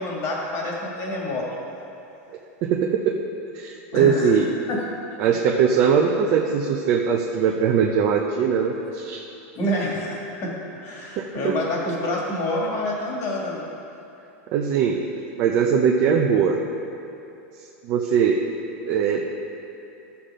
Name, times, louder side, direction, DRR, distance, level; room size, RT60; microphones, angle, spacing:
voice 1, 0.0-1.5 3.9-4.4 4.7-4.8 9.5-13.6, left 1 dB, 40° left, -3 dB, 2.3 m, -27 dB
voice 2, 2.6-3.2 3.5-4.5 5.2-9.2 11.2-11.5 14.5-15.0 15.4-16.6 17.8-18.4 18.9-19.2, right 7 dB, 50° right, -1 dB, 0.7 m, -21 dB
13.0 x 7.0 x 3.7 m, 2.8 s
supercardioid pair, 135°, 8 cm